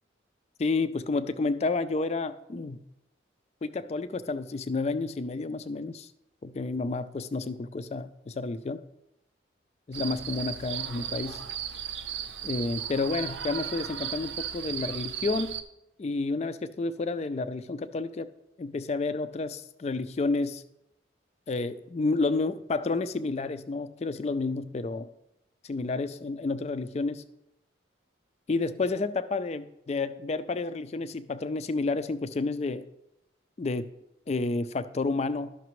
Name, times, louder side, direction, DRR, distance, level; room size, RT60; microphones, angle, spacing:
voice 1, 0.6-2.8 3.6-6.1 6.4-8.8 9.9-11.4 12.4-15.5 16.0-18.3 18.6-20.6 21.5-25.1 25.6-27.2 28.5-32.8 33.6-33.9 34.3-35.6, left 3 dB, 35° left, 13 dB, 0.3 m, -30 dB
sound 1, 9.9-15.6, right 9 dB, 65° right, 0.5 m, -36 dB
12.5 x 5.9 x 3.1 m, 0.87 s
head